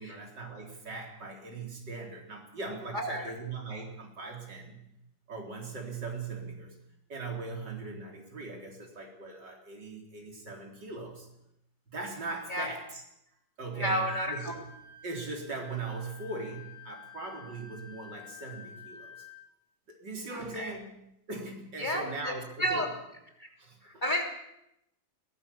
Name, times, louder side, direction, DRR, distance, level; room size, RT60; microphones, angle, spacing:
voice 1, 0.0-4.9 5.3-6.8 7.1-11.3 11.9-14.7 15.0-19.3 19.9-20.9 21.3-22.9 23.6-24.0, right 3 dB, 75° right, 1 dB, 4.7 m, -40 dB
voice 2, 2.9-3.3 12.5-12.7 13.8-14.5 20.3-20.7 21.8-22.9 23.4-23.5 23.8-24.2, equal, 25° left, 2 dB, 3.2 m, -32 dB
Wind instrument woodwind instrument, 14.0-19.5, left 5 dB, 20° right, 6.7 m, -49 dB
22.0 x 18.5 x 7.2 m, 0.81 s
omnidirectional pair, 1.9 m